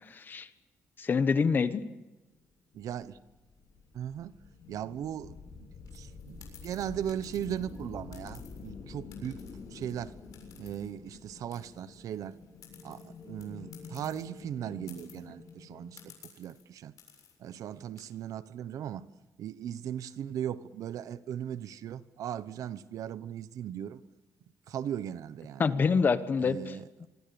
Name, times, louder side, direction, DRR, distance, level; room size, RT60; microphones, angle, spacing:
voice 1, 0.1-0.5 1.0-1.8 25.6-26.6, left 5 dB, 35° left, 12 dB, 1.2 m, -26 dB
sound 1, 2.7-16.1, left 5 dB, 65° left, 7.4 m, -48 dB
voice 2, 2.7-3.2 3.9-4.4 4.7-9.4 9.7-10.2 10.6-12.4 12.8-16.9 17.4-19.1 19.4-24.0 24.7-25.6 26.4-26.9, right 10 dB, 75° right, 15 dB, 1.0 m, -38 dB
sound 2, 5.9-8.7 9.1-11.2 11.5-14.3 14.6-14.7 14.9-15.5 16.0-16.6 17.0-17.4 17.7-18.0, left 9 dB, 90° left, 7.2 m, -56 dB
25.5 x 24.5 x 7.0 m, 1.1 s
wide cardioid pair, 170°, 6 cm